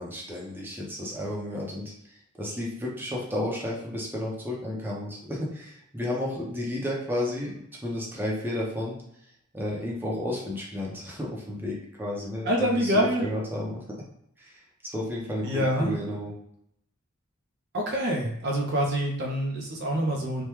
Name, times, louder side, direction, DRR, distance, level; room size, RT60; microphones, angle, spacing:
voice 1, 0.0-13.8 14.4-16.3, left 1 dB, 10° right, -3 dB, 0.6 m, -32 dB
voice 2, 12.5-13.3 15.4-16.0 17.7-20.4, equal, 50° right, 0 dB, 0.5 m, -26 dB
3.4 x 2.2 x 3.0 m, 0.72 s
head